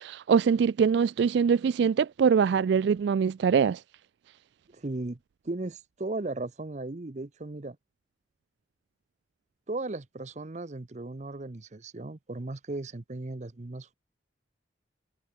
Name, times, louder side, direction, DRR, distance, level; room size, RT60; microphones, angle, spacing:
voice 1, 0.0-3.8, right 6 dB, 60° right, 0.3 m, -23 dB
voice 2, 4.7-5.2 5.4-7.8 9.7-13.9, right 2 dB, 35° right, 0.7 m, -36 dB
head